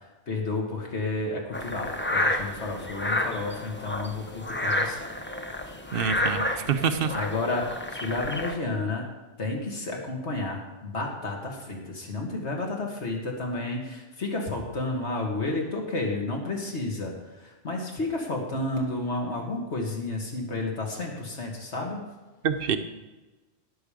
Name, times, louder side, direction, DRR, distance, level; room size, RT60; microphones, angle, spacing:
voice 1, 0.3-5.1 5.7-5.8 6.4-6.6 7.1-9.0 9.4-22.0, left 2 dB, 60° left, 0 dB, 2.4 m, -31 dB
sound 1, 1.5-8.5, left 1 dB, 10° left, 0.7 m, -30 dB
voice 2, 5.9-7.1 22.4-22.8, right 6 dB, 50° right, 9 dB, 1.0 m, -26 dB
17.5 x 7.0 x 5.1 m, 1.2 s
omnidirectional pair, 1.3 m